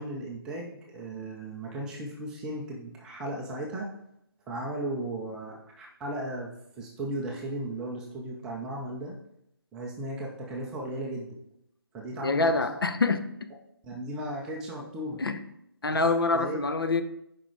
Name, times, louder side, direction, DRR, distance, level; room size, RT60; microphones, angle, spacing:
voice 1, 0.0-3.9 4.5-9.2 9.7-11.4 11.9-12.6 13.8-15.2 15.9-16.0 16.3-16.6, right 1 dB, 5° right, 0.4 m, -36 dB
voice 2, 12.2-13.3 15.2-15.4 15.8-17.0, left 3 dB, 70° left, 0.9 m, -25 dB
7.4 x 5.1 x 4.8 m
figure-of-eight pair, 160°, 13 cm